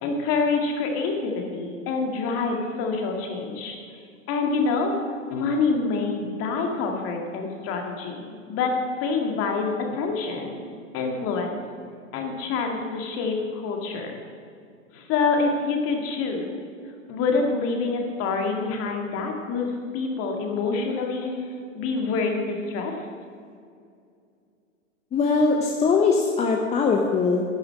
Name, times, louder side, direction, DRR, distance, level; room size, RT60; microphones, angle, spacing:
voice 1, 0.0-3.8 4.3-4.9 5.3-10.6 10.9-11.6 12.1-14.2 14.9-16.5 17.1-23.1, left 4 dB, 35° left, 2 dB, 2.1 m, -26 dB
voice 2, 25.1-27.4, left 4 dB, 15° left, 2 dB, 0.8 m, -21 dB
11.0 x 6.8 x 7.5 m, 2.3 s
hypercardioid pair, 110°, 39 cm